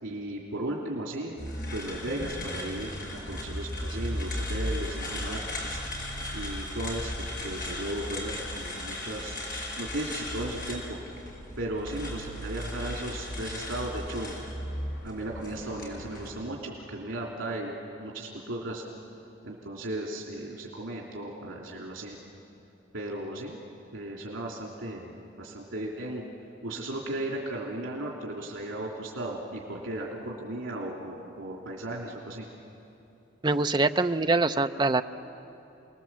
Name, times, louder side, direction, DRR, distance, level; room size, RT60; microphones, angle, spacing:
voice 1, 0.0-1.3 1.7-5.8 6.3-9.4 9.8-11.0 11.6-14.4 15.0-17.7 18.0-18.8 19.4-22.2 22.9-23.6 23.9-26.2 26.6-32.5, right 1 dB, 85° right, -2 dB, 3.0 m, -36 dB
sound 1, 1.4-16.3, left 1 dB, 45° left, 5.5 m, -36 dB
voice 2, 33.4-35.0, right 3 dB, 20° right, 8 dB, 0.5 m, -24 dB
29.5 x 20.0 x 7.5 m, 2.9 s
head